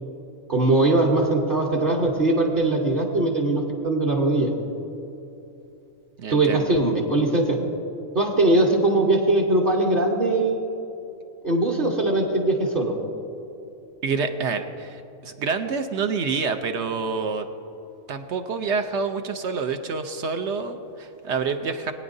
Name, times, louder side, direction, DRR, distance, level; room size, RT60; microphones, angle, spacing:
voice 1, 0.5-4.5 6.3-7.6 8.1-10.6 11.4-12.9, right 2 dB, 45° right, -1 dB, 1.2 m, -21 dB
voice 2, 6.2-6.7 14.0-17.5 18.1-21.9, right 5 dB, 65° right, 6 dB, 0.9 m, -27 dB
20.5 x 9.5 x 2.7 m, 2.8 s
omnidirectional pair, 1.4 m